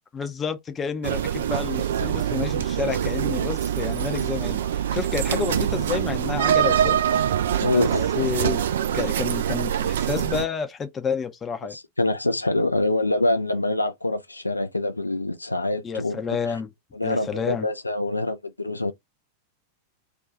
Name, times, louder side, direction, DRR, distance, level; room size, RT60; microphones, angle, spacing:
voice 1, 0.1-7.0 7.6-7.9 8.1-8.6 8.9-11.8 15.8-16.7 17.0-17.7, left 6 dB, 20° left, 0.5 m, -30 dB
sound 1, 1.0-10.5, right 10 dB, 60° right, 0.3 m, -24 dB
voice 2, 5.3-5.6 7.6-8.4 11.7-16.2 16.9-18.9, left 2 dB, 85° left, 0.3 m, -25 dB
2.4 x 2.3 x 3.9 m
figure-of-eight pair, 90°, 0 cm